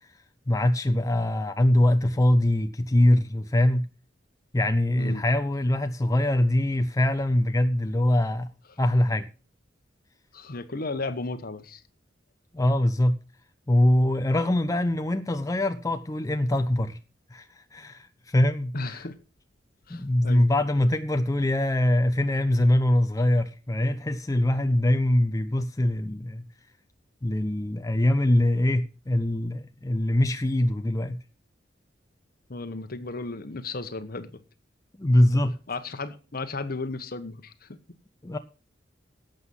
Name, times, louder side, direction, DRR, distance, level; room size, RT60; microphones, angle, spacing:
voice 1, 0.5-3.8 4.5-8.5 8.8-9.3 12.5-13.1 13.7-17.0 17.3-19.0 19.9-26.4 27.2-31.2 35.0-35.6 38.2-38.4, left 1 dB, 20° left, 0.5 m, -23 dB
voice 2, 10.3-11.8 18.7-19.2 19.9-20.5 32.5-34.3 35.7-37.8, left 3 dB, 55° left, 1.2 m, -34 dB
11.5 x 8.0 x 5.7 m
head